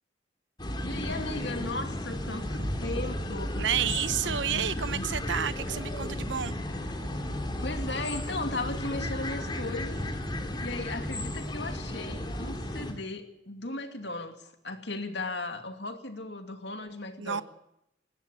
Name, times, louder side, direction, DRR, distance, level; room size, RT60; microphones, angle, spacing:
sound 1, 0.6-12.9, left 1 dB, 25° left, 3.0 m, -34 dB
voice 1, 0.8-3.9 4.2-5.1 7.6-10.0 10.6-17.4, left 2 dB, 65° left, 2.6 m, -37 dB
voice 2, 3.6-6.6 17.2-17.4, right 8 dB, 75° right, 0.8 m, -30 dB
20.5 x 15.5 x 8.4 m
head